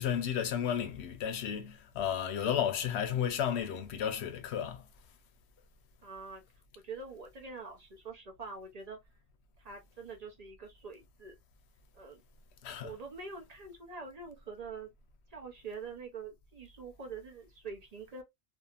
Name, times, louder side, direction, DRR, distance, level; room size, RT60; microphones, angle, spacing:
voice 1, 0.0-4.8 12.6-12.9, left 9 dB, 85° left, 0.9 m, -33 dB
voice 2, 6.0-6.4 6.7-9.0 9.6-11.4 11.9-12.2 12.8-14.9 15.3-18.2, right 4 dB, 50° right, 0.6 m, -45 dB
2.7 x 2.4 x 2.3 m
omnidirectional pair, 1.1 m